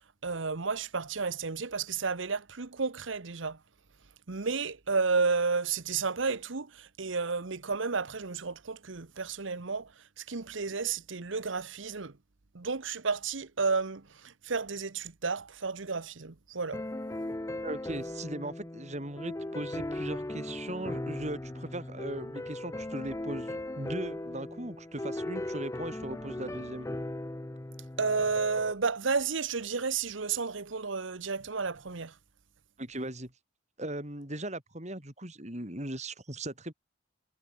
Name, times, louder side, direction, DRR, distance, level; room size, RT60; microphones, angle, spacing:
voice 1, 0.2-3.6 4.3-12.2 12.5-16.8 28.0-32.1, right 4 dB, 80° right, 1.1 m, -32 dB
sound 1, 16.7-28.7, left 1 dB, 15° left, 0.5 m, -38 dB
voice 2, 17.6-26.9 32.8-33.3 33.8-36.7, right 1 dB, 35° right, 5.3 m, -38 dB
head